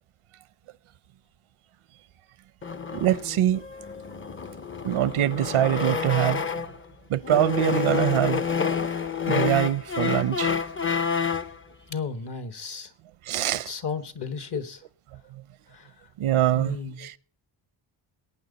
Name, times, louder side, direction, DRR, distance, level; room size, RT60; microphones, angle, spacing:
sound 1, 2.6-6.8 7.2-11.6, left 6 dB, 25° left, 0.6 m, -28 dB
voice 1, 2.9-3.6 4.8-6.4 7.1-8.4 9.3-10.5 13.3-13.7 16.2-17.2, right 12 dB, 85° right, 0.7 m, -23 dB
voice 2, 11.9-12.9 13.6-14.8 16.5-17.1, left 5 dB, 55° left, 1.5 m, -33 dB
21.5 x 9.3 x 4.0 m
wide cardioid pair, 105°, 48 cm